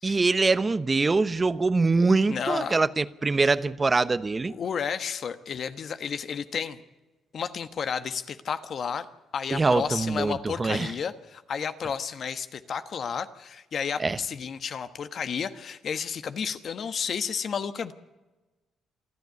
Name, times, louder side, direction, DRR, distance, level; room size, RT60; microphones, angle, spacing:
voice 1, 0.0-4.5 9.5-10.9 14.0-14.2, right 3 dB, 25° right, 0.9 m, -24 dB
voice 2, 2.3-2.8 4.5-6.8 7.3-9.0 9.3-17.9, left 7 dB, 55° left, 1.3 m, -32 dB
28.0 x 10.5 x 9.5 m
cardioid pair, 90°, 0 cm